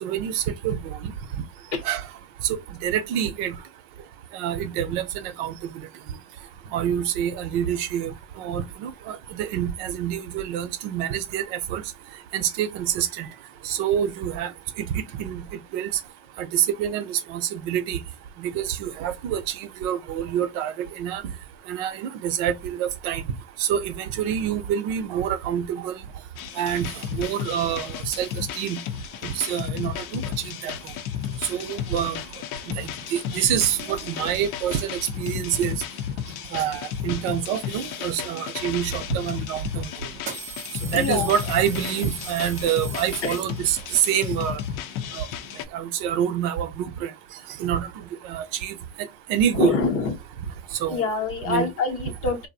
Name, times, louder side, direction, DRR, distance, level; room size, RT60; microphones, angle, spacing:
voice 1, 0.0-1.1 1.8-2.0 2.8-3.5 4.3-5.5 6.7-8.1 8.4-11.8 12.3-13.3 13.6-14.5 14.8-15.4 15.7-15.9 16.4-18.0 18.4-21.2 21.7-23.2 23.6-25.9 26.6-28.8 29.2-30.2 30.6-30.7 31.5-32.2 32.7-35.7 36.5-39.9 40.9-44.6 45.1-45.3 45.7-47.1 47.6-47.9 48.2-48.7 49.3-49.8 50.8-51.0 51.4-51.7, right 9 dB, 55° right, 0.6 m, -26 dB
sound 1, 26.4-45.6, left 9 dB, 70° left, 0.5 m, -33 dB
sound 2, 39.1-39.2 40.1-43.9, right 4 dB, 20° right, 0.3 m, -39 dB
voice 2, 40.9-41.3 43.2-43.4 49.5-50.2 50.9-52.5, left 5 dB, 30° left, 0.6 m, -25 dB
2.5 x 2.0 x 2.5 m
supercardioid pair, 140°, 46 cm